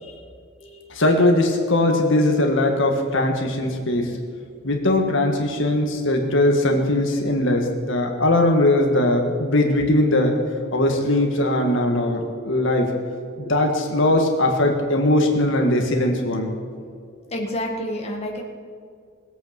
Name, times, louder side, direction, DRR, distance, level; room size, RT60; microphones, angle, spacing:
voice 1, 0.9-4.2 4.6-10.3 10.7-12.9 13.4-16.5, left 1 dB, 65° left, 2 dB, 1.9 m, -20 dB
voice 2, 17.3-18.4, equal, 30° left, -1 dB, 1.8 m, -30 dB
20.5 x 8.4 x 6.1 m, 2.2 s
head